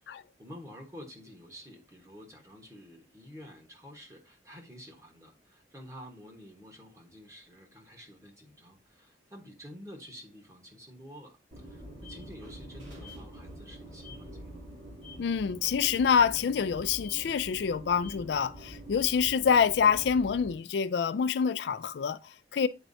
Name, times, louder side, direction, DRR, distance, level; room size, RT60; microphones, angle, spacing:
voice 1, 0.0-14.6, equal, 15° right, 1.2 m, -49 dB
sound 1, 11.5-20.6, equal, 90° right, 2.5 m, -46 dB
voice 2, 15.2-22.7, left 6 dB, 70° left, 0.3 m, -26 dB
9.1 x 4.4 x 2.7 m
head